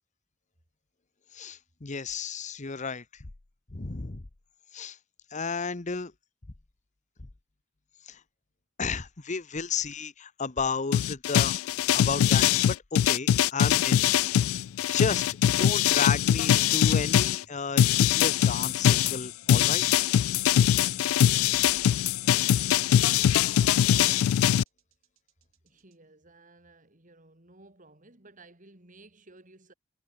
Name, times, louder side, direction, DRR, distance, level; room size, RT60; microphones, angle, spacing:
voice 1, 1.3-3.0 3.7-4.2 4.7-5.0 5.3-6.1 8.1-8.2 8.8-11.6 11.9-14.0 14.9-19.8, left 5 dB, 35° left, 0.9 m, -33 dB
sound 1, 10.9-17.4 17.8-24.6, left 10 dB, 90° left, 0.3 m, -22 dB
sound 2, 14.0-25.9, right 1 dB, 80° right, 6.6 m, -60 dB
voice 2, 25.6-29.7, right 2 dB, 40° right, 3.6 m, -55 dB
head